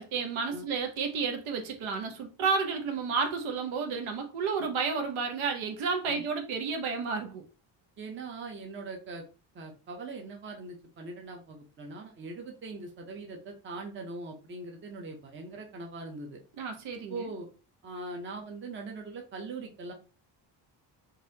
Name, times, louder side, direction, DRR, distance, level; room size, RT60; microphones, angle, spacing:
voice 1, 0.0-7.4 16.6-17.3, right 5 dB, 90° right, 0.9 m, -31 dB
voice 2, 8.0-9.2 9.5-16.4 17.1-17.5 17.8-19.9, right 3 dB, 25° right, 0.6 m, -41 dB
4.0 x 2.6 x 2.7 m
cardioid pair, 175°, 47 cm